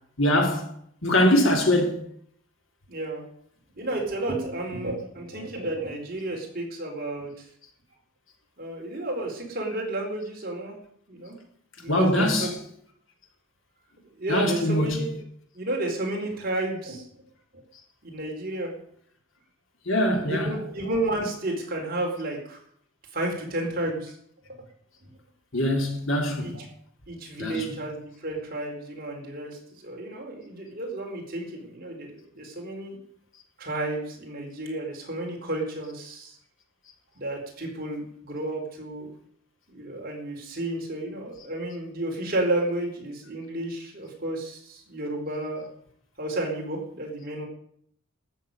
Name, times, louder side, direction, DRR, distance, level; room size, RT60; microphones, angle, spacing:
voice 1, 0.2-0.7 1.0-2.0 11.9-12.6 14.3-15.1 19.8-20.6 25.5-26.6 27.4-27.8, left 1 dB, 60° left, 3.3 m, -23 dB
voice 2, 2.9-3.2 3.8-7.5 8.6-10.8 11.1-11.4 11.8-12.6 14.2-15.2 15.5-17.0 18.0-18.7 20.2-22.6 23.1-24.1 26.4-26.7 27.1-33.0 33.6-36.4 37.1-39.1 39.7-45.7 46.2-47.4, right 1 dB, 45° right, 4.4 m, -32 dB
13.5 x 7.4 x 9.2 m
head